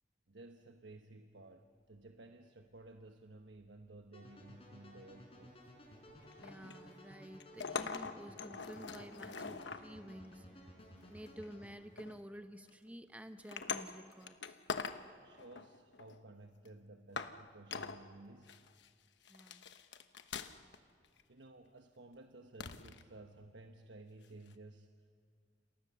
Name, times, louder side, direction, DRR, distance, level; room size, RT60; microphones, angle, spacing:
voice 1, 0.3-5.6 15.2-18.6 21.3-25.1, right 2 dB, 80° right, 6 dB, 1.1 m, -55 dB
sound 1, 4.1-11.7, equal, 30° left, 5.0 m, -56 dB
sound 2, 6.1-7.0 7.4-9.8 10.8-11.5 12.0-12.2 12.7-12.9 13.4-15.0 15.3-16.2 16.6-16.7 17.2-17.4 17.7-18.0 18.5-18.9 19.2-20.8 21.0-21.2 22.6-23.0 24.5-24.6, left 5 dB, 75° left, 1.1 m, -43 dB
voice 2, 6.4-10.8 11.0-14.6 19.3-19.6, equal, 10° right, 8 dB, 0.9 m, -51 dB
29.5 x 28.0 x 6.9 m, 2.2 s
head